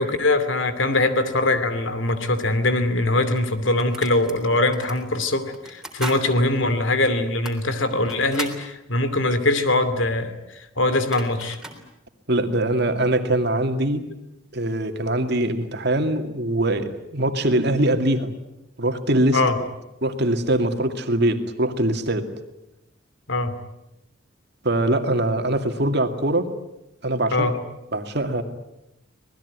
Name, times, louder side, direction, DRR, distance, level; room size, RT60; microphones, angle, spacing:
voice 1, 0.0-11.6 19.3-19.6 23.3-23.5 27.3-27.6, left 2 dB, 70° left, 11 dB, 2.7 m, -22 dB
sound 1, 3.4-4.4 4.7-5.0 5.5-6.2 6.6-6.7 7.3-8.6 10.6-10.7 10.9-11.8, right 1 dB, 5° right, 3.5 m, -36 dB
voice 2, 12.3-14.1 14.5-18.3 18.8-19.4 20.0-22.3 24.6-26.5 27.0-27.5 27.9-28.4, right 1 dB, 55° right, 7 dB, 2.3 m, -22 dB
26.0 x 19.5 x 9.6 m, 0.90 s
head